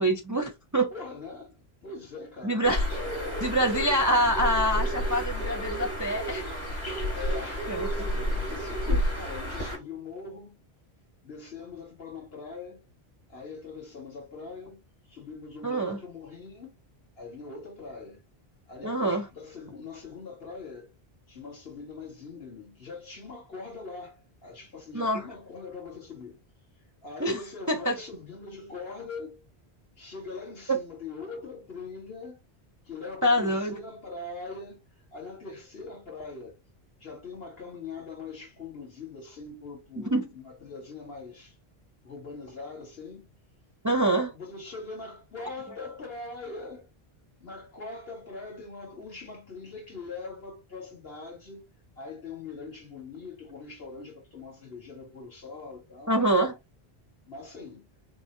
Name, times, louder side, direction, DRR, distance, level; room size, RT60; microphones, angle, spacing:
voice 1, 0.0-0.9 2.4-2.9 3.4-6.5 7.7-8.1 8.9-9.0 15.6-16.0 18.8-19.2 24.9-25.2 27.2-27.4 27.7-28.0 30.7-30.8 33.2-33.8 40.0-40.3 43.8-44.4 56.1-56.6, right 1 dB, 25° right, 0.4 m, -25 dB
voice 2, 0.9-2.6 3.1-3.5 7.1-8.8 9.1-10.6 11.2-12.8 13.3-16.8 17.2-18.2 18.7-20.9 21.3-26.4 27.0-29.5 30.0-32.4 32.8-34.8 35.1-36.6 37.0-41.6 42.0-43.3 44.3-46.9 47.4-51.6 52.0-56.1 57.2-57.9, left 4 dB, 65° left, 2.0 m, -42 dB
Bird, 2.6-9.8, equal, 50° left, 2.3 m, -30 dB
5.9 x 2.2 x 2.6 m
omnidirectional pair, 1.1 m